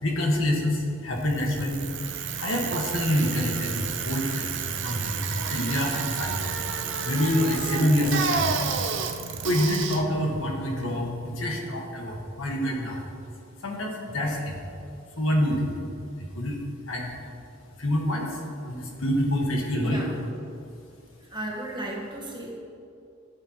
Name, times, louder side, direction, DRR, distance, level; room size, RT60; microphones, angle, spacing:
voice 1, 0.0-1.9 2.4-6.5 6.8-8.6 9.4-13.0 13.6-14.6 15.2-15.8 16.2-16.6 16.9-17.1 17.8-18.4 18.6-20.0, left 1 dB, 85° left, 0 dB, 1.5 m, -27 dB
Bicycle, 1.2-11.3, right 6 dB, 65° right, 0.7 m, -31 dB
voice 2, 19.8-20.1 21.2-22.6, right 1 dB, 25° right, -2 dB, 1.3 m, -35 dB
13.5 x 7.0 x 3.0 m, 2.6 s
head